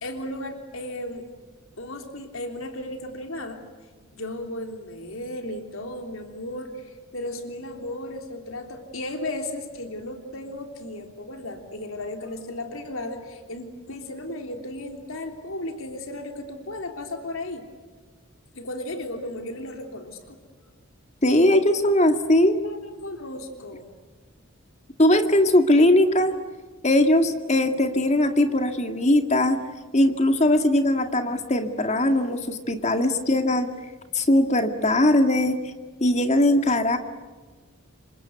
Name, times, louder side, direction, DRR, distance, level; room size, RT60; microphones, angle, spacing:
voice 1, 0.0-1.3 1.8-3.6 4.1-17.7 18.5-20.4 22.6-23.9, left 1 dB, 70° left, 5 dB, 3.4 m, -35 dB
voice 2, 21.2-22.6 25.0-26.3 26.8-29.6 29.9-33.7 34.1-35.6 36.0-37.0, left 1 dB, 30° left, 6 dB, 2.2 m, -20 dB
28.5 x 25.5 x 8.1 m, 1.4 s
head